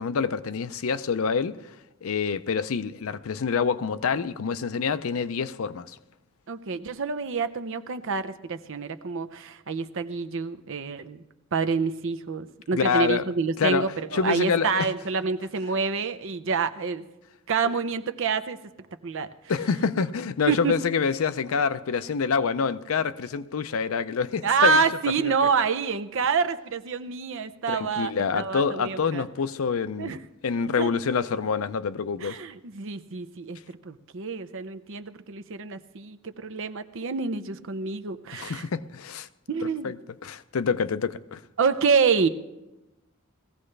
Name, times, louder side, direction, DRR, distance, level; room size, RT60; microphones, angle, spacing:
voice 1, 0.0-1.6 2.0-6.0 12.7-13.2 13.6-14.9 17.6-17.7 19.5-24.8 25.2-25.3 27.7-30.1 30.4-32.4 38.3-39.3 39.8-40.0 40.2-41.4, left 5 dB, 75° left, 0.5 m, -26 dB
voice 2, 6.5-11.2 11.5-17.0 17.5-18.6 19.0-19.3 20.5-20.7 24.4-29.2 30.0-30.2 30.8-30.9 32.2-38.7 39.5-39.9 41.6-42.3, right 5 dB, 65° right, 0.7 m, -27 dB
19.5 x 15.0 x 3.3 m
head